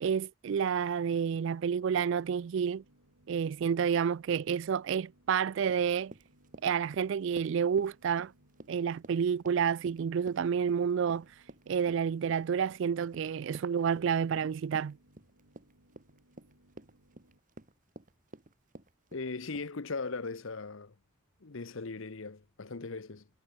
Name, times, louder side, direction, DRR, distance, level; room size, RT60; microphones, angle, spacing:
voice 1, 0.0-2.8 3.3-6.1 6.6-8.3 8.7-11.3 11.7-15.0, right 7 dB, 60° right, 0.3 m, -29 dB
sound 1, 1.6-17.4, right 1 dB, 75° right, 5.8 m, -66 dB
Run, 5.6-19.7, right 1 dB, 35° right, 1.6 m, -53 dB
voice 2, 19.1-20.9 21.4-23.3, left 3 dB, 65° left, 0.9 m, -39 dB
head